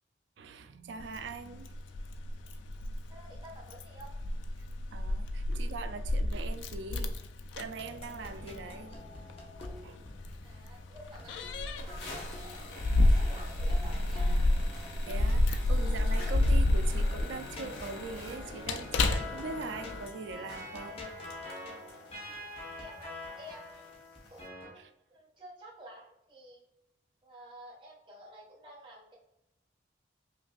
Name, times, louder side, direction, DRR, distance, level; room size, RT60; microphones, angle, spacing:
voice 1, 0.4-1.7 4.9-7.1 7.6-9.2 9.8-10.1 15.0-21.0 22.3-22.4 24.8-24.9, right 4 dB, 70° right, 0.4 m, -42 dB
Keys jangling, 1.0-20.1, left 1 dB, 80° left, 0.4 m, -30 dB
voice 2, 3.1-4.1 10.4-14.5 22.8-23.9 24.3-24.7 25.1-26.6 27.2-29.1, equal, 25° right, 1.4 m, -51 dB
sound 1, 7.2-7.3 7.6-7.7 8.1-8.5 9.0-9.1 9.4-10.0 10.3-10.4 10.7-10.8 11.0-11.3 11.8-24.5, left 2 dB, 60° left, 1.0 m, -50 dB
sound 2, 7.8-24.7, left 2 dB, 30° left, 0.8 m, -46 dB
5.2 x 2.6 x 2.4 m
head